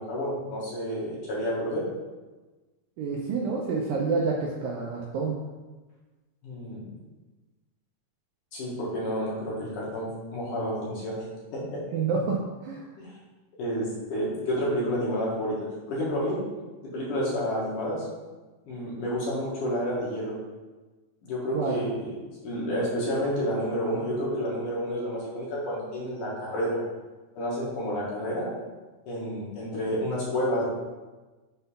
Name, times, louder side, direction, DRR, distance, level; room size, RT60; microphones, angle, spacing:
voice 1, 0.0-1.9 6.4-6.9 8.5-11.3 11.5-11.8 13.0-13.2 13.6-16.4 16.8-18.1 18.7-20.4 21.2-26.8 27.4-28.5 29.1-30.6, equal, 60° left, -6 dB, 2.9 m, -30 dB
voice 2, 3.0-5.4 11.9-12.8 21.5-21.8, right 4 dB, 80° right, -1 dB, 2.1 m, -28 dB
7.4 x 3.8 x 5.5 m, 1.2 s
omnidirectional pair, 4.6 m